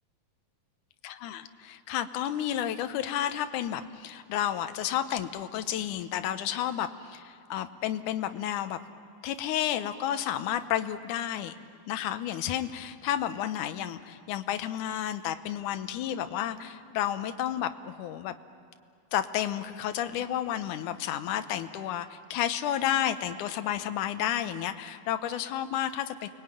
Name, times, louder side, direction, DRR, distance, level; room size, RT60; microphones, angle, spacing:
voice 1, 1.0-8.8 9.2-11.5 11.9-18.4 19.1-26.3, left 11 dB, 70° left, 9 dB, 2.1 m, -31 dB
29.5 x 21.5 x 9.1 m, 2.3 s
omnidirectional pair, 4.3 m